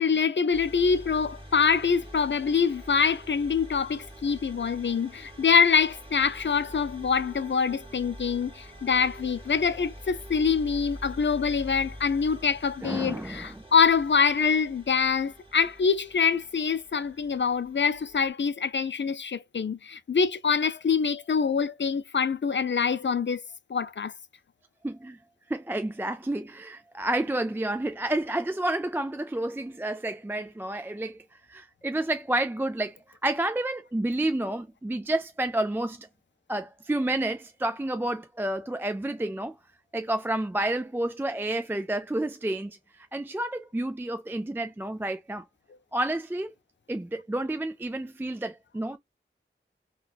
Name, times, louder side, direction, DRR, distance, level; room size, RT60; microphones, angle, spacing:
voice 1, 0.0-23.4 23.7-24.1, left 6 dB, 60° left, 0.5 m, -25 dB
sound 1, 0.5-18.3, equal, 25° right, 1.4 m, -46 dB
voice 2, 12.8-13.6 24.8-25.2 25.5-31.2 31.5-36.1 36.5-39.6 39.9-45.5 45.9-46.5 46.9-49.0, right 1 dB, 10° right, 0.3 m, -30 dB
3.9 x 2.3 x 2.2 m
wide cardioid pair, 60°, 21 cm